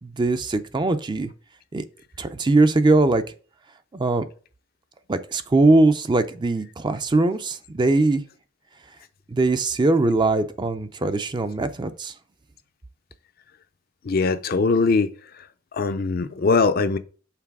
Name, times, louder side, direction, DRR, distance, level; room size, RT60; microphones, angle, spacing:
voice 1, 0.0-1.3 1.7-1.8 2.2-3.2 3.9-4.2 5.1-8.2 9.3-12.1, right 2 dB, 25° right, 0.4 m, -21 dB
voice 2, 14.0-15.1 15.7-17.0, left 4 dB, 50° left, 0.5 m, -21 dB
5.9 x 4.0 x 4.7 m
head